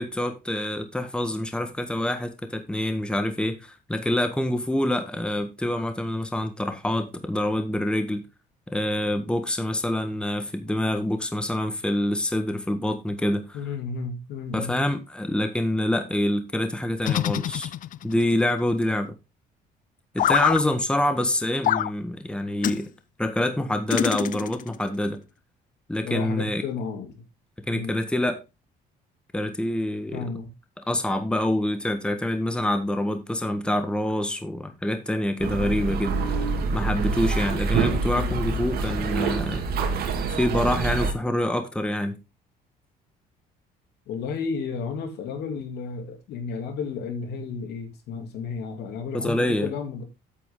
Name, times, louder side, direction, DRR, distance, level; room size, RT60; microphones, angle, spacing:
voice 1, 0.0-8.2 8.7-13.6 14.5-17.7 18.0-19.1 20.1-22.9 23.2-25.2 25.9-26.6 27.6-28.4 29.3-30.3 30.9-39.6 40.0-42.2 49.1-49.7, left 1 dB, 5° left, 1.5 m, -26 dB
voice 2, 13.5-14.7 26.0-27.2 27.7-28.0 30.1-30.5 44.1-50.0, left 5 dB, 75° left, 2.9 m, -32 dB
sound 1, 17.0-18.2 20.2-20.6 21.6-21.9 22.6-22.8 23.9-24.8, left 12 dB, 50° left, 0.5 m, -25 dB
sound 2, 35.4-41.1, right 4 dB, 65° right, 2.3 m, -26 dB
8.4 x 8.3 x 3.8 m
cardioid pair, 110°, 17 cm